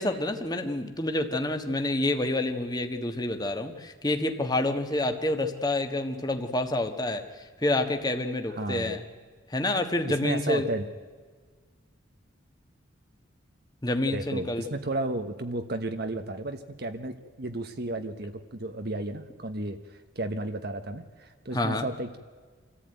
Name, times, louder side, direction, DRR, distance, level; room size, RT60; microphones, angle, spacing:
voice 1, 0.0-9.0 9.5-10.7 13.8-14.6 21.5-21.9, left 2 dB, 20° left, 6 dB, 1.4 m, -28 dB
voice 2, 8.6-9.0 10.1-10.8 14.1-22.2, right 2 dB, 55° right, 7 dB, 1.1 m, -33 dB
25.5 x 14.5 x 9.1 m, 1.5 s
head